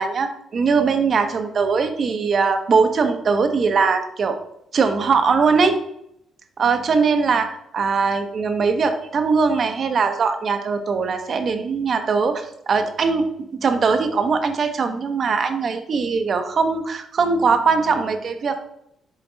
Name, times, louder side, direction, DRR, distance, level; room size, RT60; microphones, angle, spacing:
voice 1, 0.0-4.4 4.7-5.8 6.6-13.3 13.6-18.7, right 5 dB, 50° right, 7 dB, 0.9 m, -20 dB
7.3 x 3.8 x 3.9 m, 0.75 s
cardioid pair, 90°, 0 cm